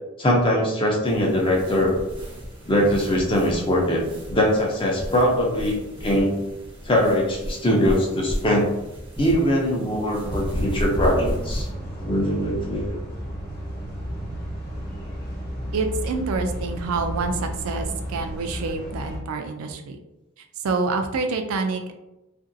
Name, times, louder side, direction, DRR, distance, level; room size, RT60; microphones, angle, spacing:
voice 1, 0.2-2.0 2.6-4.0 4.3-6.3 6.8-8.8 9.2-11.7 12.0-13.0, equal, 25° left, -1 dB, 0.5 m, -21 dB
sound 1, 1.0-11.7, equal, 20° right, 0.6 m, -34 dB
sound 2, 10.2-19.2, equal, 40° left, 1.0 m, -33 dB
voice 2, 15.7-20.0 20.6-21.9, right 4 dB, 75° right, 6 dB, 0.4 m, -27 dB
2.8 x 2.5 x 2.6 m, 0.97 s
head